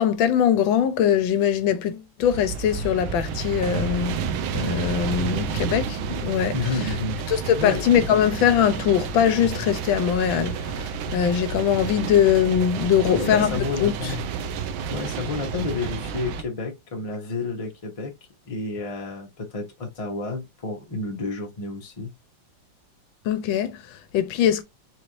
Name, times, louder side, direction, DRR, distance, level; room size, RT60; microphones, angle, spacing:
voice 1, 0.0-4.2 4.5-6.9 7.3-14.1 23.2-24.6, left 9 dB, 75° left, 1.3 m, -22 dB
sound 1, 2.2-16.4, right 6 dB, 85° right, 1.4 m, -30 dB
voice 2, 6.5-7.2 7.6-7.8 13.0-14.3 14.9-18.1 18.5-22.1, left 3 dB, 30° left, 0.6 m, -30 dB
4.4 x 2.6 x 3.0 m
omnidirectional pair, 2.3 m